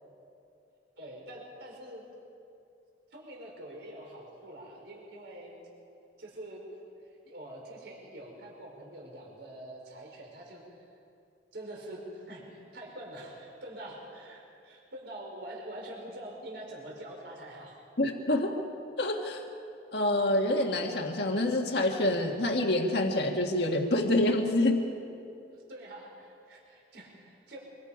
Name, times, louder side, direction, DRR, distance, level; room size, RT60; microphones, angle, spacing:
voice 1, 1.0-2.0 3.1-5.6 6.2-6.6 7.2-10.6 11.5-17.8 25.5-27.6, right 1 dB, 65° right, -1 dB, 4.7 m, -45 dB
voice 2, 18.0-18.5 19.0-19.4 19.9-24.8, left 1 dB, 60° left, 1 dB, 1.7 m, -27 dB
25.0 x 25.0 x 5.0 m, 2.6 s
head